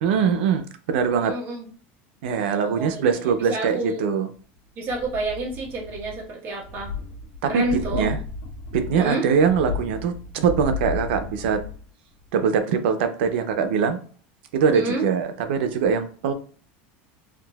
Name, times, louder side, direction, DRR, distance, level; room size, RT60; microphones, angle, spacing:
voice 1, 0.0-1.4 2.2-4.3 7.4-8.2 8.7-11.6 12.3-14.0 14.5-16.3, right 6 dB, 90° right, 8 dB, 0.5 m, -22 dB
voice 2, 1.1-1.6 2.7-4.1 4.8-6.9 7.5-8.1 8.9-9.2 14.7-15.1, right 2 dB, 35° right, -2 dB, 1.1 m, -29 dB
sound 1, 4.8-6.3 6.6-11.9 12.2-12.3, left 4 dB, 80° left, 1.2 m, -34 dB
3.7 x 2.6 x 2.3 m, 0.43 s
supercardioid pair, 145°, 6 cm